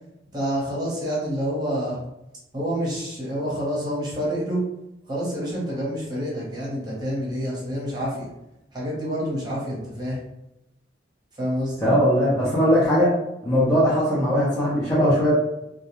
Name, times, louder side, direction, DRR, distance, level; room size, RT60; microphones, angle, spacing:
voice 1, 0.3-2.0 2.5-4.6 5.1-8.2 8.7-10.2 11.4-11.9, equal, 20° right, -6 dB, 0.9 m, -28 dB
voice 2, 11.8-13.1 13.4-15.3, equal, 15° left, -10 dB, 0.6 m, -19 dB
2.3 x 2.2 x 3.0 m, 0.88 s
head